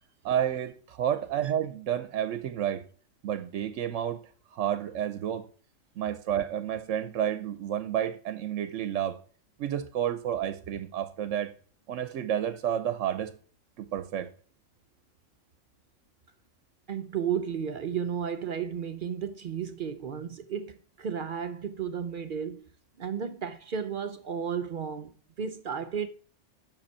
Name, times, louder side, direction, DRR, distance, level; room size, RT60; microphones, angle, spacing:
voice 1, 0.2-2.8 3.2-4.2 4.5-5.5 6.0-9.2 9.6-11.5 11.9-13.4 13.8-14.3, right 10 dB, 80° right, 0.9 m, -30 dB
voice 2, 16.9-22.6 23.0-26.1, right 7 dB, 55° right, 0.6 m, -33 dB
7.8 x 6.0 x 4.2 m
omnidirectional pair, 1.3 m